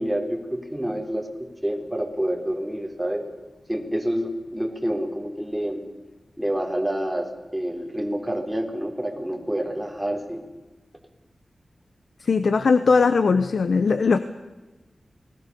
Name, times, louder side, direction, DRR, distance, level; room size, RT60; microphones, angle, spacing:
voice 1, 0.0-3.3 3.7-5.8 6.4-10.4, right 1 dB, 5° right, 2 dB, 4.0 m, -28 dB
voice 2, 12.2-14.2, left 4 dB, 75° left, 11 dB, 0.9 m, -19 dB
28.5 x 20.0 x 7.0 m, 1.2 s
wide cardioid pair, 85°, 0 cm